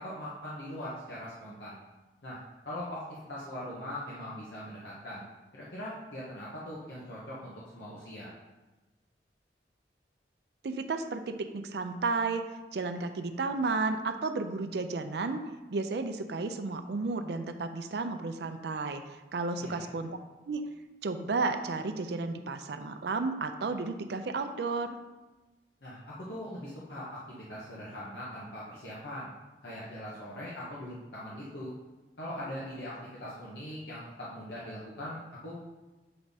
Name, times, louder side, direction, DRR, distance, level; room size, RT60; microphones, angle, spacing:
voice 1, 0.0-1.8 2.2-2.4 2.6-3.0 3.3-5.2 5.5-8.3 19.6-19.9 25.8-29.3 29.6-31.7 32.2-35.6, left 1 dB, 75° left, -7 dB, 1.1 m, -41 dB
voice 2, 10.6-15.4 15.7-20.2 20.5-20.6 21.0-25.0, right 3 dB, 70° right, 8 dB, 0.4 m, -33 dB
7.7 x 3.6 x 4.0 m, 1.1 s
head